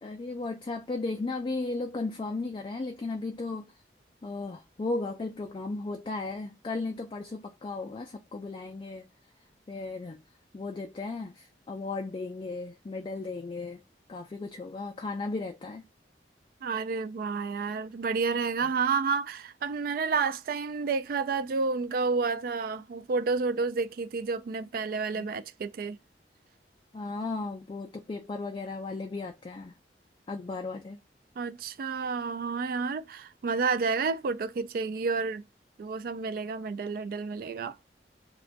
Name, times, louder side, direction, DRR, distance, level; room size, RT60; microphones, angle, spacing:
voice 1, 0.0-3.7 4.2-9.1 9.7-10.2 10.5-13.8 14.1-15.8 18.6-18.7 25.1-25.3 26.9-29.8 30.3-31.0, left 3 dB, 30° left, 0.3 m, -35 dB
voice 2, 16.6-26.0 31.4-35.4 35.8-37.8, right 4 dB, 55° right, 0.3 m, -30 dB
2.5 x 2.2 x 3.8 m
head